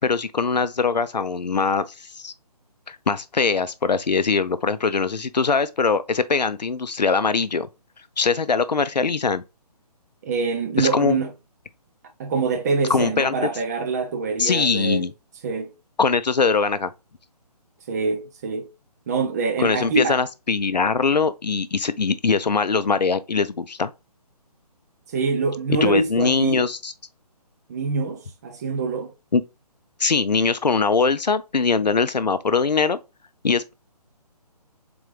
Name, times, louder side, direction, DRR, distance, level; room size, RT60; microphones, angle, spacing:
voice 1, 0.0-1.8 2.1-2.3 2.9-7.7 8.2-9.4 10.8-11.2 12.9-13.3 14.4-15.1 16.0-16.9 19.6-23.9 25.8-26.9 29.3-29.4 30.0-33.0 33.4-33.7, left 5 dB, 90° left, 0.5 m, -22 dB
voice 2, 10.2-11.3 12.2-15.1 15.4-15.7 17.9-18.7 19.1-20.2 25.1-26.7 27.7-29.1, right 4 dB, 25° right, 0.6 m, -25 dB
3.9 x 3.5 x 3.2 m
figure-of-eight pair, 145°, 21 cm